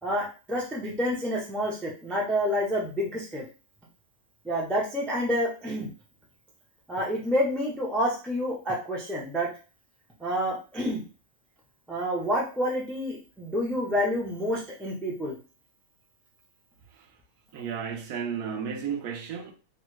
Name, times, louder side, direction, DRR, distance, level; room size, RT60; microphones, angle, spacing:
voice 1, 0.0-3.4 4.4-5.9 6.9-9.5 10.2-11.0 11.9-15.4, equal, ahead, 0.3 m, -28 dB
voice 2, 17.5-19.5, right 7 dB, 80° right, 1.1 m, -33 dB
3.1 x 2.2 x 3.1 m
omnidirectional pair, 1.6 m